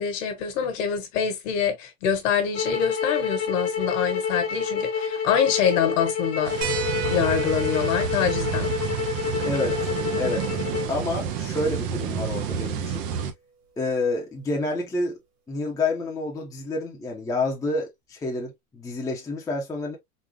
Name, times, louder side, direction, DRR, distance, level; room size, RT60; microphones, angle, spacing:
voice 1, 0.0-6.7 7.1-8.7, left 7 dB, 55° left, 1.4 m, -25 dB
sound 1, 2.5-10.9, left 6 dB, 30° left, 0.9 m, -28 dB
sound 2, 6.4-13.3, right 8 dB, 25° right, 0.4 m, -30 dB
sound 3, 6.6-11.7 13.2-13.3 15.0-15.1, right 5 dB, 50° right, 1.6 m, -37 dB
voice 2, 9.4-9.8 10.2-10.5 10.9-13.1 13.8-15.2 15.5-20.0, left 2 dB, 10° left, 0.7 m, -28 dB
3.9 x 2.3 x 2.9 m
hypercardioid pair, 135°, 45 cm